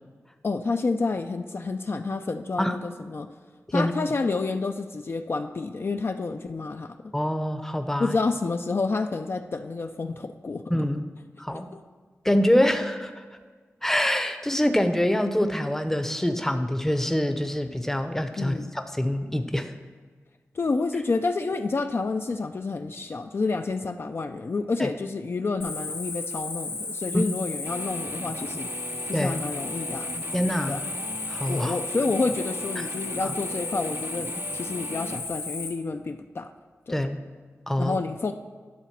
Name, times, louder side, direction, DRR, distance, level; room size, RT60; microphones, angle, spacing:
voice 1, 0.4-3.3 3.7-7.1 8.0-10.6 11.7-11.8 18.4-18.7 20.5-28.7 29.1-30.1 30.7-30.8 31.5-36.5 36.9-37.0 37.8-38.3, left 3 dB, 50° left, 6 dB, 0.4 m, -29 dB
voice 2, 7.1-8.2 10.7-11.0 11.4-11.7 12.2-13.2 13.8-19.7 24.8-24.9 27.1-27.2 29.1-29.4 30.3-30.8 31.3-31.7 32.8-32.9 33.2-33.3 36.9-37.2 37.7-38.0, left 1 dB, 5° left, 7 dB, 0.6 m, -25 dB
Cricket, 25.6-35.7, left 3 dB, 85° left, 2.2 m, -34 dB
Guitar, 27.7-35.3, right 3 dB, 50° right, 0.5 m, -40 dB
11.0 x 4.0 x 5.8 m, 1.5 s
wide cardioid pair, 85°, 5 cm